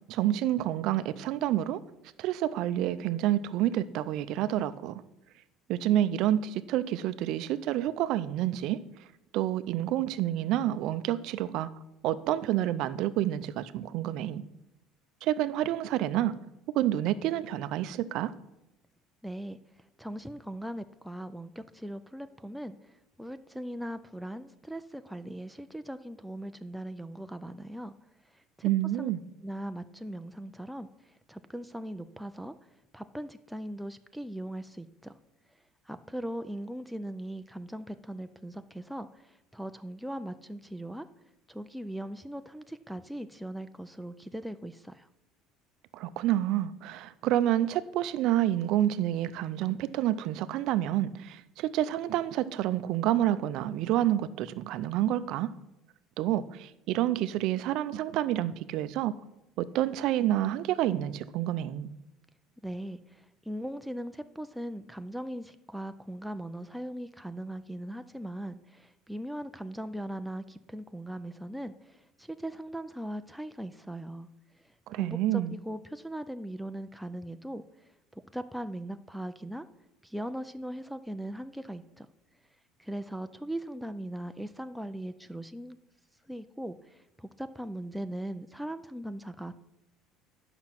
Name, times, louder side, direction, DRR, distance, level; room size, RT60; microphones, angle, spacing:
voice 1, 0.1-1.8 2.2-4.9 5.7-8.8 9.3-11.7 12.0-14.4 15.2-16.3 16.7-18.3 28.6-29.2 45.9-55.5 56.2-59.1 59.6-61.9 74.9-75.6, right 12 dB, 60° right, 13 dB, 0.5 m, -28 dB
voice 2, 19.2-19.6 20.0-22.8 23.2-27.9 28.6-28.7 29.0-29.1 29.4-30.9 31.3-32.5 32.9-35.1 35.9-39.1 39.5-41.1 41.5-45.1 62.6-74.3 74.9-77.6 78.3-79.7 80.0-82.1 82.8-85.8 86.3-86.8 87.2-89.6, right 1 dB, ahead, 9 dB, 0.3 m, -39 dB
10.5 x 5.9 x 5.9 m, 0.92 s
cardioid pair, 150°, 0 cm